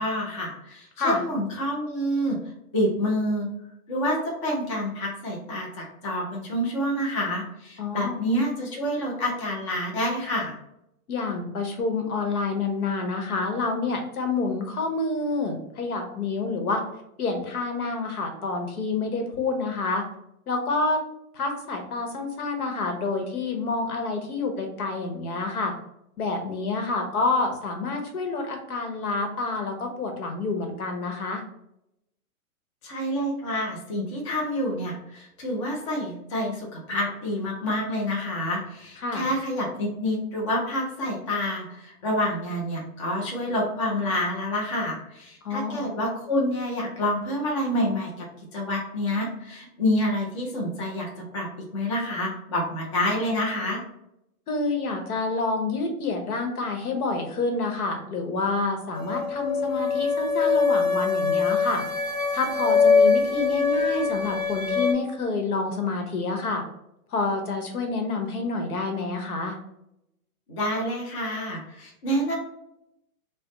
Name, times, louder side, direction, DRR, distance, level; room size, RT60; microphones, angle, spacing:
voice 1, 0.0-2.4 2.7-3.5 3.9-10.5 32.8-53.8 70.5-72.3, left 1 dB, 25° left, -2 dB, 0.4 m, -28 dB
voice 2, 7.8-8.2 11.1-16.8 17.2-20.0 20.5-21.0 21.3-25.7 26.2-31.4 39.0-39.3 45.4-45.8 54.5-61.8 62.3-66.6 67.1-69.6, left 3 dB, 75° left, 3 dB, 1.1 m, -28 dB
sound 1, 59.0-64.9, left 5 dB, 60° left, 0.8 m, -23 dB
3.3 x 2.1 x 3.8 m, 0.82 s
hypercardioid pair, 150°, 44 cm